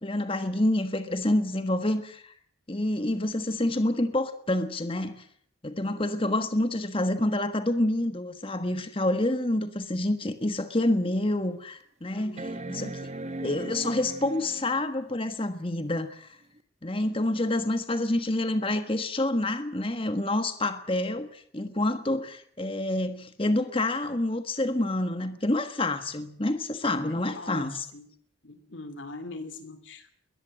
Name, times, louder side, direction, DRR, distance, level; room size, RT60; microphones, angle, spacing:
voice 1, 0.0-2.3 2.7-5.2 5.6-12.4 12.7-13.0 13.4-16.4 16.8-27.8, left 1 dB, 25° left, 9 dB, 1.4 m, -28 dB
sound 1, 10.2-10.3 10.9-11.0 12.4-14.8 16.6-16.7, right 2 dB, 35° right, 1.4 m, -37 dB
voice 2, 12.1-12.9 26.8-28.1 28.4-30.2, left 3 dB, 65° left, 10 dB, 2.5 m, -43 dB
21.5 x 20.5 x 7.6 m, 0.62 s
head